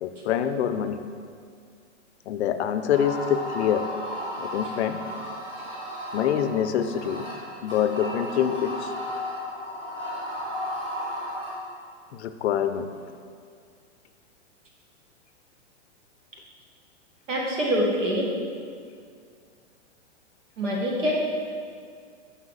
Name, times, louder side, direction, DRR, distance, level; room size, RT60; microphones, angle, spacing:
voice 1, 0.0-1.0 2.3-3.9 4.4-5.0 6.1-7.3 7.6-8.9 12.1-12.9, left 9 dB, 65° left, 9 dB, 0.5 m, -25 dB
sound 1, 2.9-11.5, left 1 dB, 15° right, 1.5 m, -34 dB
voice 2, 17.3-18.2 20.6-21.2, equal, 85° right, -2 dB, 1.7 m, -25 dB
5.7 x 5.6 x 4.0 m, 2.2 s
hypercardioid pair, 155°, 37 cm